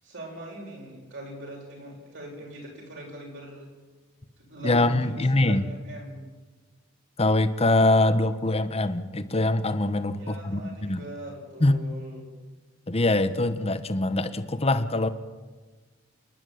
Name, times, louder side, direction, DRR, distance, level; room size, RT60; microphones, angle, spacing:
voice 1, 0.0-3.7 4.4-6.3 10.1-12.3, right 1 dB, 65° right, -1 dB, 7.6 m, -41 dB
voice 2, 4.6-5.7 7.2-11.0 11.6-11.8 12.9-15.1, left 2 dB, 30° left, 11 dB, 1.1 m, -23 dB
28.5 x 11.0 x 9.4 m, 1.4 s
head